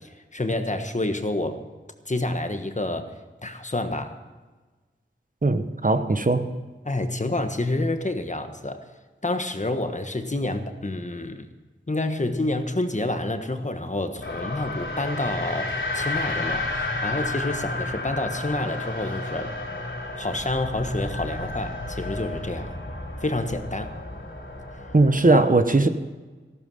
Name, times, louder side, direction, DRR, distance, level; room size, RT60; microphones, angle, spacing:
voice 1, 0.3-1.6 2.0-3.1 3.4-4.2 6.8-8.8 9.2-11.5 11.9-19.5 20.2-22.7 23.2-23.9 25.3-25.4 25.8-25.9, left 2 dB, 35° left, 7 dB, 1.4 m, -28 dB
voice 2, 5.4-6.5 24.9-25.9, right 2 dB, 40° right, 9 dB, 1.0 m, -19 dB
sound 1, 14.2-25.3, left 2 dB, 75° left, 3.1 m, -32 dB
14.0 x 13.0 x 5.5 m, 1.3 s
wide cardioid pair, 45°, 20 cm